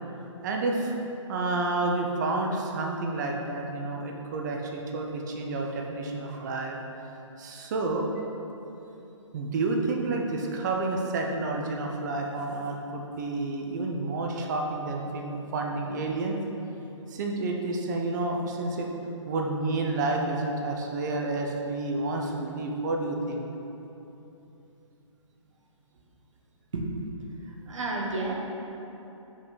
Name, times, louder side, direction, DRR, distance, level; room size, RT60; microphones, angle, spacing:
voice 1, 0.4-0.9 1.3-6.8 7.4-8.1 9.3-16.4 17.1-18.9 19.3-23.4, right 2 dB, 35° right, 1 dB, 0.7 m, -30 dB
voice 2, 27.7-28.3, right 3 dB, 70° right, -1 dB, 1.2 m, -30 dB
5.3 x 5.2 x 4.0 m, 3.0 s
hypercardioid pair, 150°, 17 cm